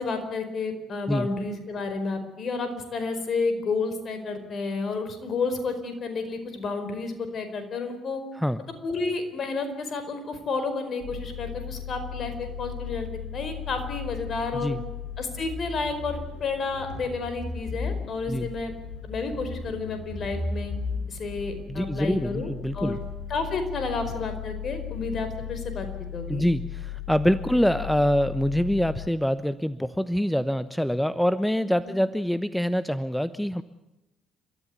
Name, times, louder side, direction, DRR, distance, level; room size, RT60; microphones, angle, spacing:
voice 1, 0.0-8.2 8.8-14.8 15.2-18.7 19.0-20.7 21.1-23.0 23.3-25.9 26.1-26.4, left 4 dB, 45° left, 8 dB, 4.8 m, -31 dB
sound 1, 11.0-29.1, left 6 dB, 75° left, 5.2 m, -36 dB
voice 2, 21.7-23.0 26.3-33.6, equal, 5° left, 14 dB, 1.0 m, -25 dB
29.5 x 14.0 x 9.5 m, 0.96 s
hypercardioid pair, 50°, 0 cm